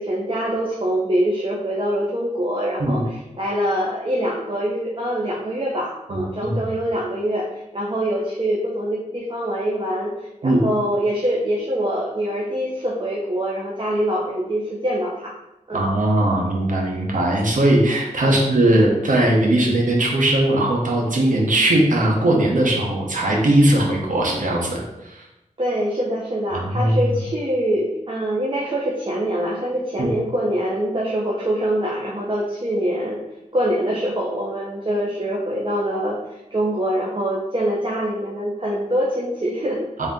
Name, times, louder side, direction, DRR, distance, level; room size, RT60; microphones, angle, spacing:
voice 1, 0.0-15.3 15.7-15.8 18.2-18.4 25.6-33.2 33.5-39.8, right 1 dB, 40° right, -4 dB, 0.7 m, -24 dB
voice 2, 6.1-6.5 10.4-10.6 15.7-25.2 26.5-27.0 30.0-30.1 40.0-40.1, right 1 dB, 80° right, -1 dB, 0.9 m, -19 dB
3.5 x 2.7 x 3.6 m, 0.94 s
wide cardioid pair, 60°, 13 cm